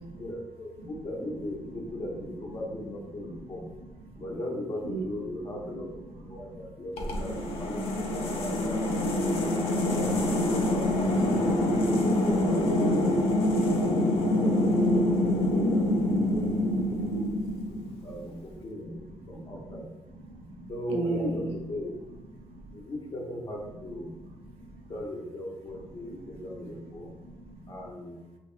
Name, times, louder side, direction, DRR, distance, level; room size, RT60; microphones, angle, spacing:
voice 1, 0.1-3.7 4.2-5.9 6.2-9.5 9.9-10.9 11.2-13.0 13.7-17.3 17.7-19.9 20.7-22.0 22.7-24.1 24.9-27.1 27.7-28.2, left 1 dB, 40° left, 0 dB, 0.7 m, -38 dB
sound 1, 7.0-18.0, left 1 dB, 80° left, 0.5 m, -26 dB
voice 2, 17.7-18.1 19.3-19.8 20.1-21.4 24.6-24.7 27.0-27.7, right 2 dB, 85° right, 1 dB, 0.5 m, -37 dB
2.9 x 2.8 x 2.4 m, 1.1 s
cardioid pair, 80°, 10 cm